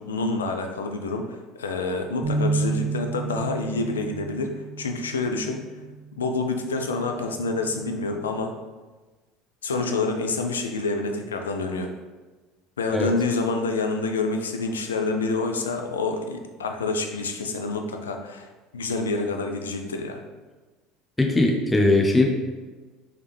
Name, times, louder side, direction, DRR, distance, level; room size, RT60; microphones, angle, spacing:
voice 1, 0.0-5.6 6.2-8.5 9.6-11.9 12.8-20.2, left 3 dB, 85° left, 4 dB, 0.4 m, -27 dB
sound 1, 2.2-8.5, right 4 dB, 55° right, 0.9 m, -32 dB
voice 2, 21.2-22.2, left 2 dB, 10° left, 0 dB, 0.7 m, -20 dB
3.5 x 3.2 x 3.4 m, 1.3 s
hypercardioid pair, 70°, 0 cm